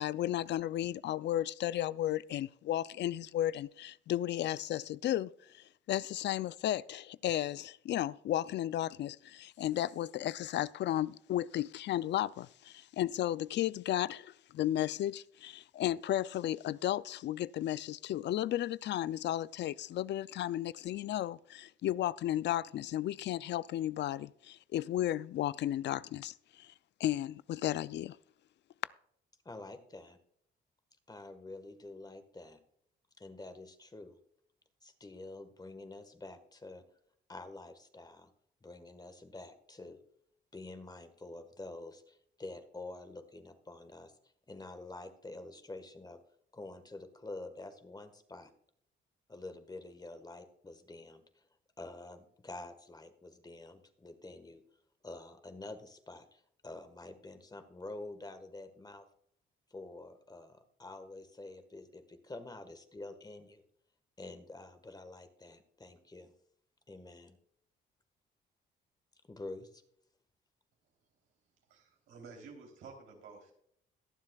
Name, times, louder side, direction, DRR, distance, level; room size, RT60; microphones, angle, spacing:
voice 1, 0.0-26.7 27.0-28.2, left 12 dB, 65° left, 0.4 m, -34 dB
voice 2, 29.4-30.2 31.1-32.6 33.2-34.2 34.8-36.8 37.3-38.3 38.6-40.0 40.5-44.1 44.5-46.2 46.5-48.5 49.3-51.5 51.8-54.6 55.0-59.0 59.7-63.6 64.2-66.3 66.9-67.4 69.3-69.8, left 2 dB, 20° left, 1.4 m, -48 dB
voice 3, 71.7-73.5, right 4 dB, 85° right, 3.3 m, -51 dB
22.0 x 7.4 x 2.3 m
cardioid pair, 90°, 20 cm